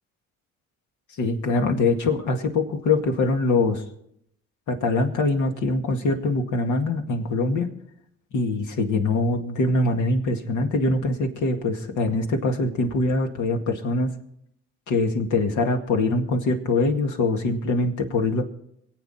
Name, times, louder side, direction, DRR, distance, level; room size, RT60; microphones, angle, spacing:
voice 1, 1.2-3.8 4.7-7.7 8.3-14.1 14.9-18.4, left 3 dB, 80° left, 4 dB, 2.1 m, -23 dB
25.0 x 8.6 x 4.4 m, 0.75 s
cardioid pair, 90°, 30 cm